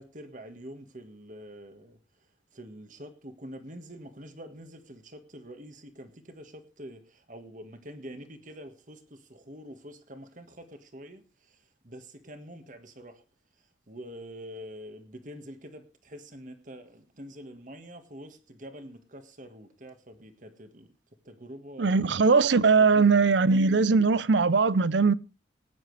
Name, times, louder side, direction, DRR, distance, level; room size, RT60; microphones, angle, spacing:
voice 1, 0.0-2.0 2.5-13.2 13.9-20.9 21.3-22.1 22.8-23.1, equal, 45° right, 1.7 m, -46 dB
voice 2, 21.8-25.1, right 4 dB, 70° right, 0.6 m, -21 dB
19.5 x 10.0 x 3.4 m
head